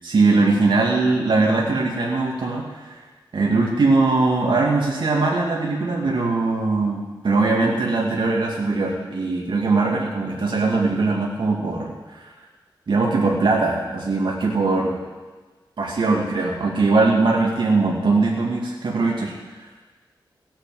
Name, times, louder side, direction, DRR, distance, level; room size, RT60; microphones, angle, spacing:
voice 1, 0.0-3.0 3.3-12.3 12.9-15.0 15.8-19.3, right 3 dB, 75° right, -2 dB, 2.4 m, -21 dB
17.0 x 8.8 x 7.7 m, 1.3 s
wide cardioid pair, 110°, 8 cm